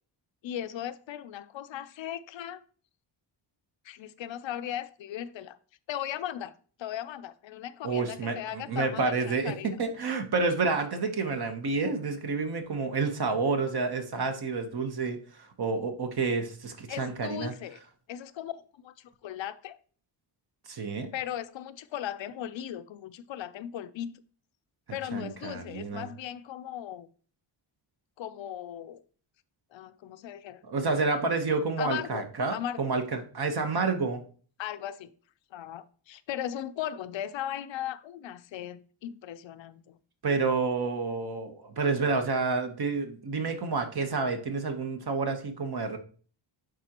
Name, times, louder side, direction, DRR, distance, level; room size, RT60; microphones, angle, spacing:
voice 1, 0.4-2.6 3.8-5.6 5.9-6.5 6.8-9.8 16.9-17.8 18.1-19.8 21.1-24.2 24.9-27.1 28.2-29.0 29.7-30.6 31.8-32.2 32.5-32.9 34.6-35.1 35.5-40.0, left 11 dB, 65° left, 0.6 m, -37 dB
voice 2, 7.8-15.2 15.6-17.5 20.7-21.1 25.1-26.1 30.6-34.2 40.2-46.0, right 4 dB, 50° right, 1.1 m, -29 dB
10.0 x 3.8 x 2.9 m
cardioid pair, 85°, 49 cm